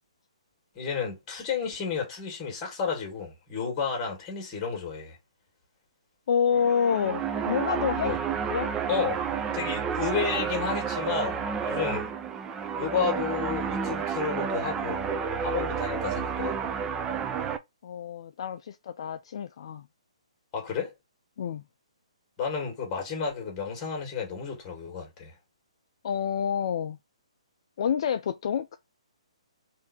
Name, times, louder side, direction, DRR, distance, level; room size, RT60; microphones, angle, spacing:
voice 1, 0.8-5.2 8.0-8.2 8.9-9.2 9.5-12.1 12.7-15.1 15.4-16.6 20.5-20.9 22.4-25.3, left 6 dB, 25° left, 2.0 m, -31 dB
voice 2, 6.3-8.2 8.5-8.7 17.8-19.9 21.4-21.6 26.0-27.0 27.8-28.8, left 7 dB, 50° left, 0.4 m, -28 dB
sound 1, 6.5-17.6, right 6 dB, 15° right, 0.4 m, -30 dB
3.6 x 2.7 x 4.3 m
hypercardioid pair, 155°, 3 cm